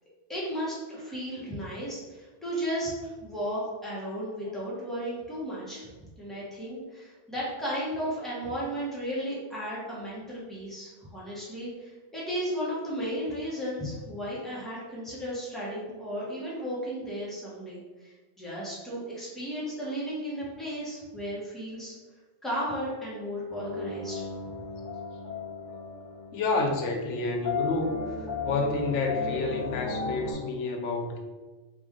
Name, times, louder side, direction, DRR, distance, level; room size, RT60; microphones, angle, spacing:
voice 1, 0.3-5.9 6.2-22.0 22.4-24.2, equal, ahead, -7 dB, 1.0 m, -34 dB
sound 1, 23.5-30.3, left 4 dB, 20° left, 1.3 m, -35 dB
voice 2, 26.3-28.0 28.4-31.2, left 3 dB, 85° left, 3 dB, 0.9 m, -29 dB
3.3 x 2.5 x 3.6 m, 1.2 s
omnidirectional pair, 1.2 m